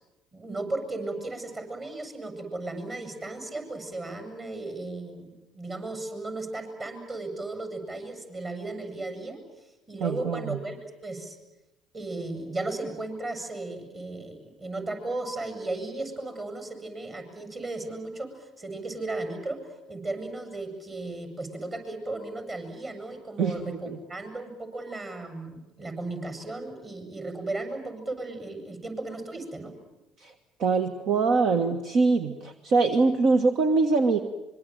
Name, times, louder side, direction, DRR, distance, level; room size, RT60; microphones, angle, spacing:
voice 1, 0.3-10.8 11.0-11.4 11.9-19.6 19.9-29.8, right 2 dB, 30° right, 7 dB, 7.4 m, -35 dB
voice 2, 10.0-10.6 23.4-23.8 30.2-30.3 30.6-34.2, right 4 dB, 60° right, 7 dB, 1.6 m, -23 dB
25.5 x 23.0 x 9.3 m, 0.97 s
hypercardioid pair, 65°, 0 cm